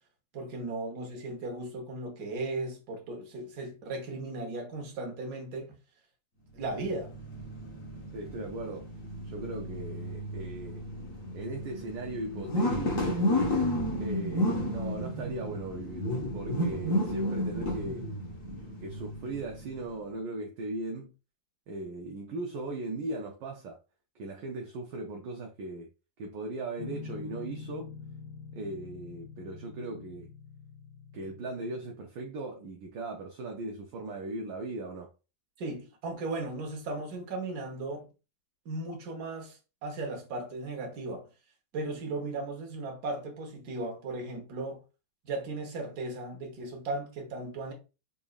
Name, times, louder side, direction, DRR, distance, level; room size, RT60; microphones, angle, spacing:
voice 1, 0.3-5.8 6.5-7.1 35.6-38.1 38.6-41.3 41.7-44.8 45.2-47.7, right 2 dB, 55° right, 1.5 m, -36 dB
sound 1, 6.6-19.9, left 1 dB, 45° left, 1.4 m, -32 dB
voice 2, 8.1-8.9 9.2-10.8 11.3-13.2 14.0-18.1 18.8-21.1 21.7-23.8 24.1-25.9 26.2-27.9 28.5-30.3 31.1-35.1, right 2 dB, 75° right, 1.3 m, -38 dB
Guitar, 26.8-32.0, left 5 dB, 75° left, 1.2 m, -45 dB
4.0 x 3.6 x 2.3 m
omnidirectional pair, 2.1 m